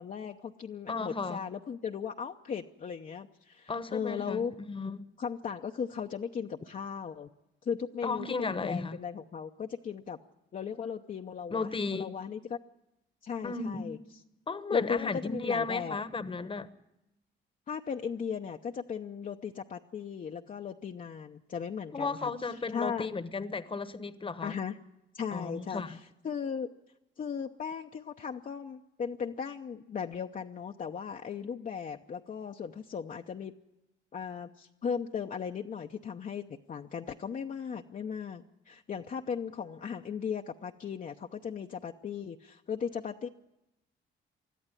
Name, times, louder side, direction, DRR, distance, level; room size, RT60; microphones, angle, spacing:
voice 1, 0.0-4.5 5.2-7.3 7.6-10.2 10.5-12.6 13.2-14.0 14.7-16.0 17.7-22.3 22.7-23.1 24.4-24.8 25.1-26.7 27.2-33.5 34.1-43.3, left 7 dB, 40° left, 2 dB, 0.8 m, -37 dB
voice 2, 0.9-1.4 3.7-4.4 4.7-5.0 8.0-9.0 11.5-12.1 13.4-14.0 14.5-16.7 21.9-24.6 25.3-26.0, left 4 dB, 25° left, 13 dB, 1.1 m, -34 dB
21.0 x 13.0 x 9.8 m, 0.92 s
cardioid pair, 90°, 20 cm